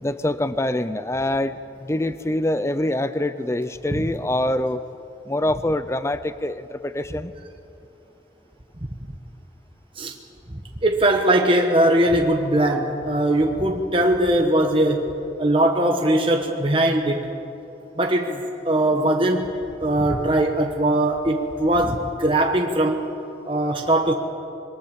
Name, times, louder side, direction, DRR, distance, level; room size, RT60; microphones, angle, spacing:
voice 1, 0.0-4.8 5.3-7.3, left 1 dB, 15° left, 13 dB, 0.5 m, -25 dB
voice 2, 10.8-15.1 15.4-17.3 18.0-19.5 19.8-23.0 23.5-24.1, right 1 dB, 30° right, 2 dB, 1.3 m, -20 dB
26.5 x 22.0 x 7.2 m, 2.9 s
head